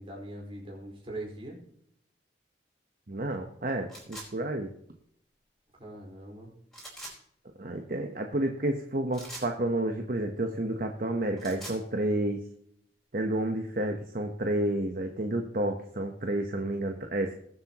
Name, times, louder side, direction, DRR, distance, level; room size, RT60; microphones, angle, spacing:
voice 1, 0.0-1.6 5.8-6.5, right 1 dB, 30° right, -2 dB, 4.4 m, -41 dB
voice 2, 3.1-4.7 7.6-12.4 13.1-17.3, right 1 dB, 50° right, 4 dB, 1.1 m, -30 dB
sound 1, 3.9-4.3 6.7-7.2 9.1-9.5 11.2-11.8, right 1 dB, 5° left, 4.6 m, -43 dB
20.5 x 7.9 x 3.0 m, 0.69 s
head